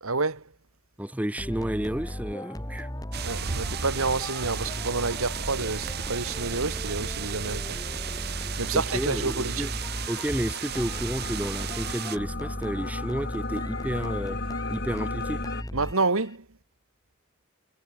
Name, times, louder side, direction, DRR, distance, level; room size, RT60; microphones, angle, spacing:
voice 1, 0.0-0.4 3.2-7.8 8.6-9.7 15.7-16.4, right 3 dB, 85° right, 2.2 m, -29 dB
voice 2, 1.0-2.9 8.7-9.7 10.1-14.4 14.7-15.4, equal, 5° right, 0.8 m, -31 dB
sound 1, 1.4-16.3, equal, 15° left, 5.9 m, -36 dB
sound 2, 3.1-12.2, right 8 dB, 50° right, 0.7 m, -35 dB
sound 3, 7.2-15.6, left 3 dB, 50° left, 3.6 m, -38 dB
head